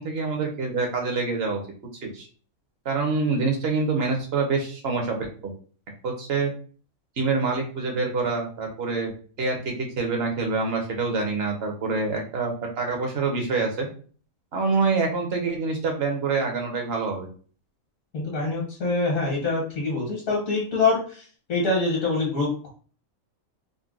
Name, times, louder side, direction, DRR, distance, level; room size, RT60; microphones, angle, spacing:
voice 1, 0.0-1.6 2.0-2.3 2.8-5.2 5.4-5.5 6.0-6.5 7.2-9.1 9.4-13.9 14.5-17.3, right 4 dB, 55° right, 2 dB, 0.9 m, -26 dB
voice 2, 18.1-21.2 21.5-22.7, left 3 dB, 75° left, -3 dB, 1.5 m, -25 dB
3.8 x 2.1 x 2.4 m, 0.41 s
omnidirectional pair, 1.4 m